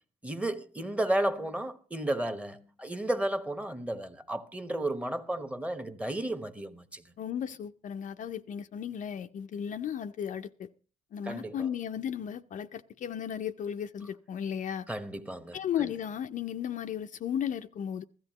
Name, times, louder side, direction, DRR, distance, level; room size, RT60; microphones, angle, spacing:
voice 1, 0.2-7.1 11.2-11.6 14.9-15.9, right 1 dB, 10° right, 1.0 m, -33 dB
voice 2, 7.2-10.7 11.1-14.9 15.5-18.0, left 9 dB, 50° left, 0.5 m, -35 dB
15.5 x 13.5 x 2.9 m
cardioid pair, 110°, 17 cm